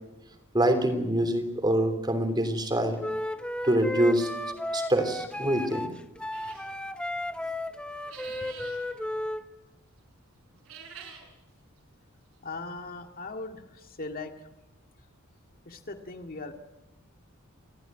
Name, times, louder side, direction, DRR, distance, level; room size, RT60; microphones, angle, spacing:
voice 1, 0.5-3.0 3.6-4.3 4.7-5.9, right 1 dB, 20° right, 7 dB, 3.3 m, -25 dB
Wind instrument woodwind instrument, 3.0-9.4, left 1 dB, 5° left, 0.9 m, -34 dB
sound 1, 6.3-6.7 8.0-8.8 10.5-11.3, right 7 dB, 75° right, 6.4 m, -46 dB
voice 2, 12.4-14.3 15.7-16.5, left 3 dB, 45° left, 5 dB, 2.2 m, -39 dB
29.0 x 14.0 x 9.3 m, 1.0 s
head